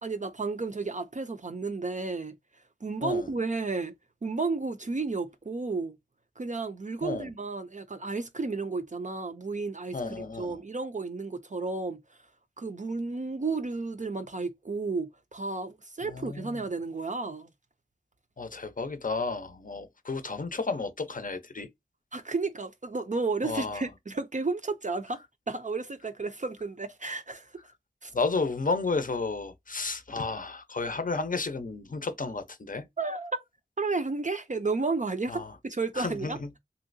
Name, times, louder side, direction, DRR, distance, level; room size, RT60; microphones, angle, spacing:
voice 1, 0.0-2.3 2.8-3.9 4.2-6.0 6.4-12.0 12.6-17.5 22.1-25.2 25.5-27.6 28.0-28.1 33.0-33.4 33.8-36.6, right 3 dB, 40° right, 0.4 m, -32 dB
voice 2, 9.9-10.5 16.0-16.6 18.4-21.7 23.4-23.9 28.1-32.9 35.3-35.5 36.0-36.5, left 3 dB, 45° left, 0.6 m, -32 dB
3.1 x 2.7 x 2.5 m
wide cardioid pair, 45°, 19 cm